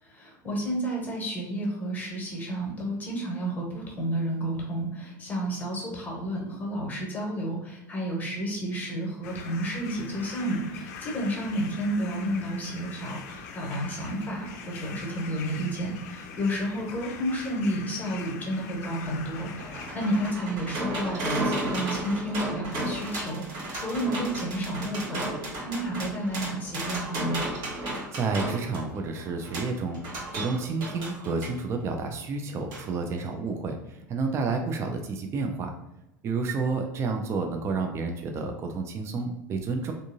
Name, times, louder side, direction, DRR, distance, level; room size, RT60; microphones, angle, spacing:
voice 1, 0.0-27.4, right 1 dB, 15° left, -1 dB, 1.2 m, -31 dB
sound 1, 9.2-20.3, left 5 dB, 55° left, 0.5 m, -42 dB
Metal Fun Dry, 19.0-31.6 32.7-32.8 33.2-33.3, right 1 dB, 45° right, 1.2 m, -34 dB
voice 2, 28.1-30.0 30.3-35.7 36.2-39.9, right 4 dB, 30° right, 4 dB, 0.5 m, -30 dB
3.5 x 2.6 x 2.7 m, 0.92 s
figure-of-eight pair, 80°, 10 cm